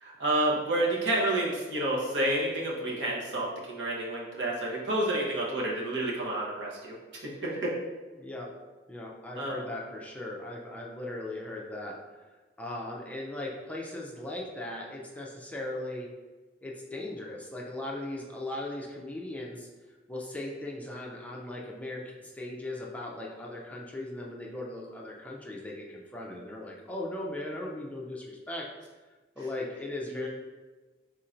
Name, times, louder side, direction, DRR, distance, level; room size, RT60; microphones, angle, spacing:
voice 1, 0.0-6.9 7.2-7.7 9.4-9.6 30.1-30.3, right 1 dB, 75° right, -4 dB, 1.0 m, -29 dB
voice 2, 8.2-8.5 8.9-16.1 16.6-19.7 20.1-28.7 29.4-30.3, left 1 dB, 10° left, -3 dB, 0.4 m, -38 dB
3.7 x 2.6 x 4.4 m, 1.3 s
head